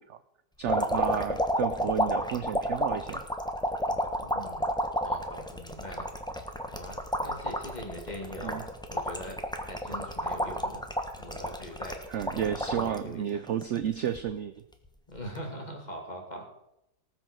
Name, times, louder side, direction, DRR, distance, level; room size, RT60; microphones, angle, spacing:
voice 1, 0.6-3.2 8.4-8.6 12.1-14.5, right 9 dB, 65° right, 11 dB, 0.7 m, -32 dB
sound 1, 0.7-13.0 13.5-14.2 15.2-15.4, equal, 5° left, 0.9 m, -31 dB
voice 2, 3.9-4.7 5.0-6.1 6.7-10.8 11.2-12.0 12.6-13.4 15.1-16.5, equal, 25° left, 1 dB, 2.7 m, -42 dB
19.0 x 6.3 x 6.3 m, 0.83 s
omnidirectional pair, 1.8 m